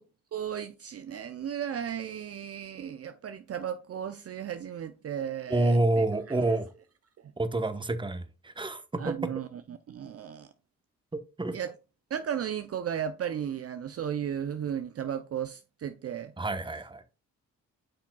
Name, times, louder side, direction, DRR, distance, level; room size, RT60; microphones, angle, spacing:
voice 1, 0.3-6.4 9.0-10.5 11.5-11.7 12.1-16.3, right 9 dB, 45° right, 0.5 m, -35 dB
voice 2, 5.5-6.7 7.4-9.1 11.1-11.6 16.4-17.0, right 2 dB, 15° right, 0.9 m, -28 dB
8.6 x 5.8 x 2.3 m
supercardioid pair, 55°, 33 cm